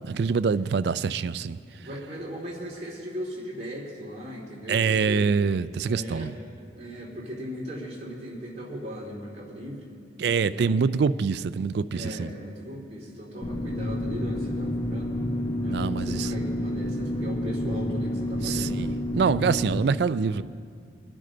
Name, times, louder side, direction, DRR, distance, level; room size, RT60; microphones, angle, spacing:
voice 1, 0.0-1.6 4.7-6.3 10.2-12.3 15.7-16.3 18.4-20.4, right 5 dB, 65° right, 0.3 m, -25 dB
voice 2, 1.8-5.2 5.8-6.3 6.8-9.9 10.4-10.7 11.9-15.2 15.6-19.0, equal, 35° right, 3.0 m, -38 dB
sound 1, 13.4-19.8, left 1 dB, 25° left, 1.2 m, -29 dB
23.0 x 9.9 x 3.9 m
head